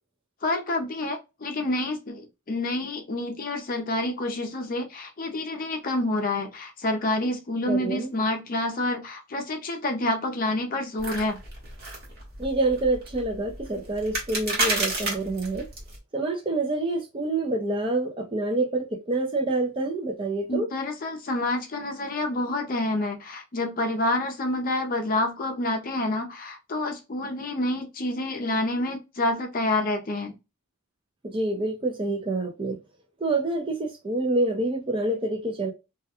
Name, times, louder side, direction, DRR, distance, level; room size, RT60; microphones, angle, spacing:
voice 1, 0.4-11.4 20.5-30.4, left 2 dB, 40° left, 0.5 m, -28 dB
voice 2, 7.7-8.1 12.4-15.6 16.1-20.7 31.2-32.8 33.2-35.7, right 2 dB, 25° right, 0.4 m, -27 dB
sound 1, 11.0-16.0, right 2 dB, 45° right, 1.0 m, -31 dB
2.3 x 2.2 x 2.8 m
head